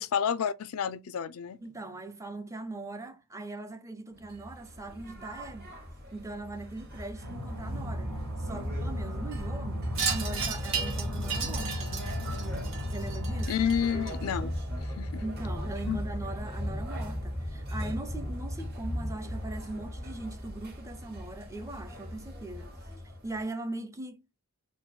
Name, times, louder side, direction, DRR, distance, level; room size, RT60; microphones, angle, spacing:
voice 1, 0.0-1.6 13.5-14.5 14.8-15.2 15.9-16.0, left 7 dB, 75° left, 0.4 m, -30 dB
voice 2, 1.6-5.7 6.1-8.1 8.4-11.9 12.9-13.5 15.2-22.7 23.2-24.2, right 2 dB, 15° right, 0.5 m, -40 dB
sound 1, 4.2-23.4, equal, 50° right, 1.7 m, -37 dB
sound 2, 7.2-13.4, equal, 90° right, 1.7 m, -38 dB
Wind chime, 9.9-14.6, right 6 dB, 65° right, 1.3 m, -35 dB
3.8 x 2.2 x 4.4 m
head